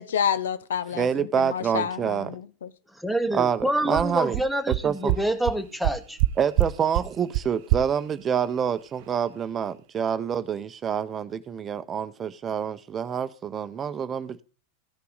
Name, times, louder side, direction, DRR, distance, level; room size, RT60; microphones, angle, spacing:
voice 1, 0.0-2.7, left 8 dB, 85° left, 0.6 m, -29 dB
voice 2, 0.9-2.3 3.3-4.4 4.8-5.1 6.4-14.4, right 8 dB, 30° right, 0.7 m, -27 dB
voice 3, 2.9-6.2, right 1 dB, ahead, 1.4 m, -27 dB
sound 1, 3.6-3.7 4.0-4.1 4.3-4.4 4.7-4.8 5.1-5.2 5.5-5.6 5.8-6.3 6.6-6.7 6.9-7.0 7.3-7.4 7.7-7.8, right 17 dB, 60° right, 0.4 m, -22 dB
15.5 x 5.6 x 4.0 m
hypercardioid pair, 110°, 0 cm